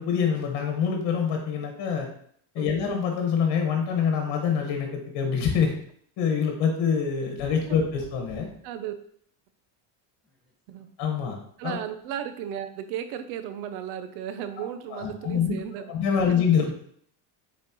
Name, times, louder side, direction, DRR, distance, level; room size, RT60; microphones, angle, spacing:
voice 1, 0.0-2.1 2.5-5.7 6.2-8.5 11.0-11.4 11.6-11.8 14.6-15.5 15.9-16.7, left 6 dB, 65° left, 2 dB, 1.6 m, -25 dB
sound 1, 7.4-8.7 10.3-10.8, equal, ahead, 1.7 m, -47 dB
voice 2, 8.6-9.0 10.7-10.9 11.6-15.9 16.3-16.4, right 9 dB, 80° right, 10 dB, 0.9 m, -35 dB
6.9 x 4.6 x 3.1 m, 0.62 s
cardioid pair, 120°, 44 cm